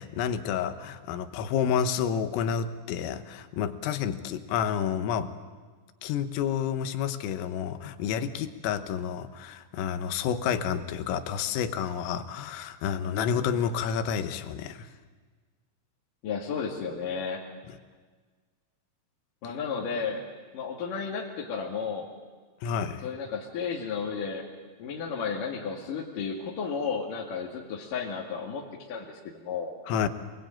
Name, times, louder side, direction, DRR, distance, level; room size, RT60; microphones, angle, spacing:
voice 1, 0.0-5.3 6.0-14.9 22.6-23.1 29.9-30.1, left 8 dB, 85° left, 9 dB, 3.8 m, -29 dB
voice 2, 16.2-17.4 19.4-20.3 20.5-22.1 23.0-24.5 24.8-29.7, left 5 dB, 50° left, -3 dB, 3.1 m, -33 dB
27.0 x 21.0 x 8.9 m, 1.5 s
omnidirectional pair, 5.9 m